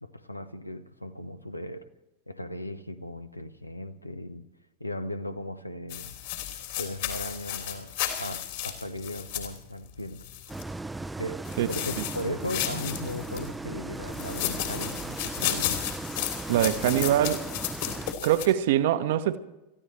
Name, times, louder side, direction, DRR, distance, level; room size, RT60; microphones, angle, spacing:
voice 1, 0.0-1.8 2.3-4.4 4.8-6.1 6.8-7.9 8.2-10.3 11.2-15.8, left 1 dB, 85° left, 1.0 m, -37 dB
sound 1, 5.9-10.6 11.4-13.5 14.1-18.5, left 11 dB, 55° left, 3.2 m, -33 dB
sound 2, 10.5-18.1, right 2 dB, 5° right, 0.6 m, -37 dB
voice 2, 16.5-17.4 18.2-19.4, right 12 dB, 55° right, 1.0 m, -23 dB
29.5 x 14.5 x 3.3 m
figure-of-eight pair, 90°, 0 cm